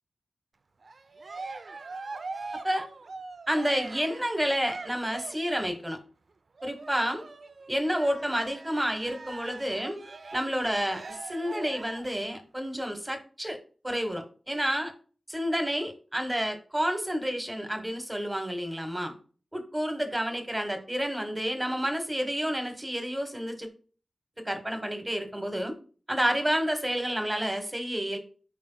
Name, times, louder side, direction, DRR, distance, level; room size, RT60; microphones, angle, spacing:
Cheering, 0.8-5.8 6.6-12.1, right 3 dB, 55° right, 0.6 m, -42 dB
voice 1, 3.5-6.0 6.6-7.2 7.7-10.0 10.3-13.6 13.8-14.9 15.3-19.1 19.5-23.7 24.4-25.8 26.1-28.2, equal, 15° right, 6 dB, 1.3 m, -30 dB
13.0 x 5.0 x 2.3 m, 0.39 s
wide cardioid pair, 105°, 0 cm